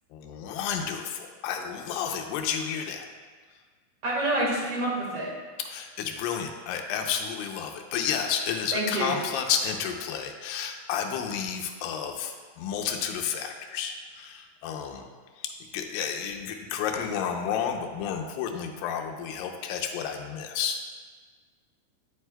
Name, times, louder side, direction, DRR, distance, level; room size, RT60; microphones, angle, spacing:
voice 1, 0.1-3.1 5.6-15.1 15.4-20.8, left 8 dB, 80° left, 3 dB, 2.4 m, -31 dB
voice 2, 4.0-5.3 8.7-9.1, right 1 dB, 50° right, -4 dB, 2.4 m, -27 dB
9.4 x 8.0 x 2.2 m, 1.5 s
omnidirectional pair, 4.2 m